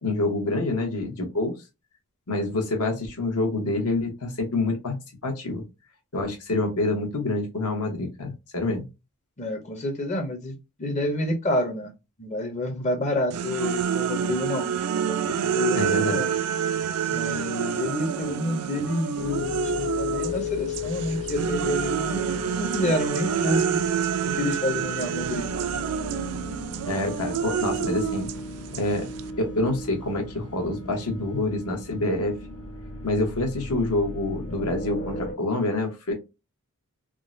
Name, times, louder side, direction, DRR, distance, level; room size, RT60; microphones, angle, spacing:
voice 1, 0.0-1.5 2.3-5.0 5.2-5.6 6.1-8.8 15.7-16.2 26.8-28.3 28.7-29.1 29.4-32.4 33.0-36.1, left 2 dB, 80° left, 1.0 m, -27 dB
voice 2, 9.4-11.9 12.2-14.7 14.9-16.3 17.1-22.3 22.6-23.8 24.3-25.4, left 1 dB, 30° left, 0.6 m, -29 dB
sound 1, 13.3-20.4 20.7-29.3, right 8 dB, 80° right, 0.3 m, -28 dB
sound 2, 19.2-35.3, left 4 dB, 55° left, 1.2 m, -35 dB
3.6 x 2.1 x 2.5 m
head